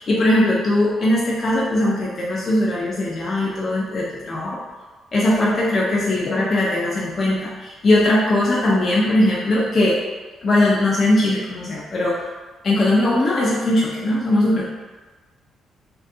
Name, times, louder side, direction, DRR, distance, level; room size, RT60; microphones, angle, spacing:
voice 1, 0.0-4.6 5.1-10.0 10.4-12.3 12.6-14.7, left 1 dB, 45° left, -6 dB, 0.4 m, -19 dB
2.6 x 2.2 x 2.5 m, 1.3 s
cardioid pair, 90°, 0 cm